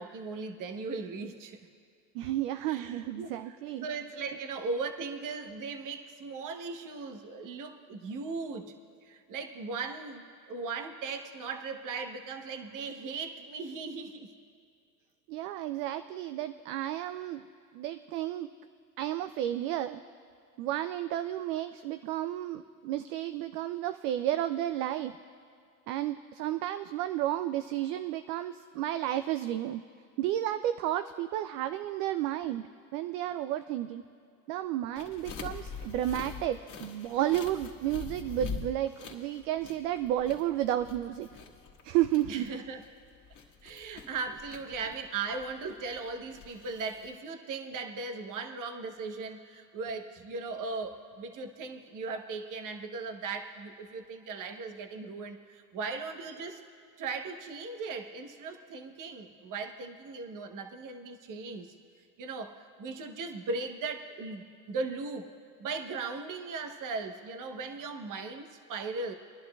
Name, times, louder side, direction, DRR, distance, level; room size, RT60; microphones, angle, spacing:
voice 1, 0.0-1.6 2.7-8.7 9.0-14.3 42.3-42.8 43.6-56.6 57.0-61.7 62.2-65.3 65.6-69.1, right 4 dB, 40° right, 6 dB, 1.1 m, -38 dB
voice 2, 2.1-3.9 15.3-17.4 17.7-18.5 19.0-20.0 20.6-25.2 25.9-29.8 30.2-34.0 34.5-41.3 41.8-42.5, right 12 dB, 70° right, 11 dB, 0.6 m, -32 dB
sound 1, 35.0-47.1, left 5 dB, 40° left, 1.8 m, -44 dB
26.0 x 11.0 x 2.4 m, 2.4 s
supercardioid pair, 90°, 47 cm